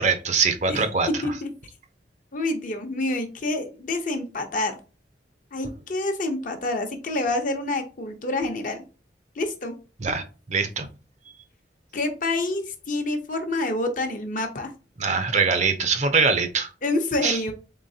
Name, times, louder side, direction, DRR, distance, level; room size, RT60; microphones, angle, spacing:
voice 1, 0.0-1.1 10.0-10.9 15.0-16.7 17.2-17.4, right 5 dB, 40° right, 8 dB, 0.6 m, -23 dB
voice 2, 2.3-4.8 5.5-8.8 9.4-9.7 11.9-14.7 16.8-17.5, left 2 dB, 45° left, 5 dB, 0.8 m, -27 dB
3.9 x 3.8 x 2.7 m, 0.33 s
head